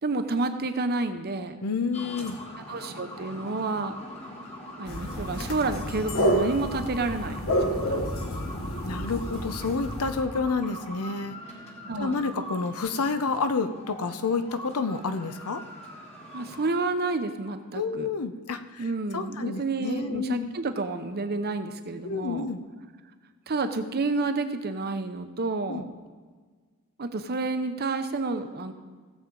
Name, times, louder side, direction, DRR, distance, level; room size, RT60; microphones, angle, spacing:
voice 1, 0.0-1.6 2.7-4.0 4.8-8.0 9.0-9.1 9.3-9.4 11.9-12.3 16.3-18.1 18.8-22.5 23.5-25.9 27.0-28.7, right 3 dB, 45° right, 8 dB, 0.7 m, -30 dB
voice 2, 1.6-2.4 8.8-11.4 12.0-15.6 17.7-18.9 19.1-20.5 22.0-22.6 25.7-25.9, left 4 dB, 90° left, 10 dB, 0.7 m, -29 dB
sound 1, 1.9-16.7, left 1 dB, 30° left, 1.5 m, -42 dB
sound 2, 4.9-10.2, equal, 65° left, 1.3 m, -29 dB
16.5 x 7.4 x 3.9 m, 1.5 s
head